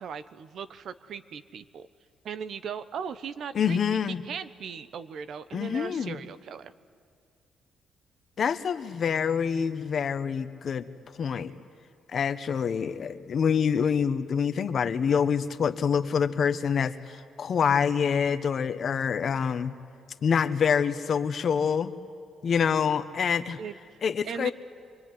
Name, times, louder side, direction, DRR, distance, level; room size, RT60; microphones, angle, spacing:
voice 1, 0.0-1.9 2.2-4.0 4.2-6.7 23.6-24.0 24.2-24.5, right 6 dB, 65° right, 13 dB, 1.0 m, -38 dB
voice 2, 3.5-4.2 5.5-6.2 8.4-10.9 11.2-11.6 12.1-19.7 20.2-21.9 22.4-23.6 24.0-24.5, left 7 dB, 55° left, 11 dB, 1.2 m, -26 dB
25.0 x 23.0 x 9.6 m, 2.2 s
cardioid pair, 90°, 0 cm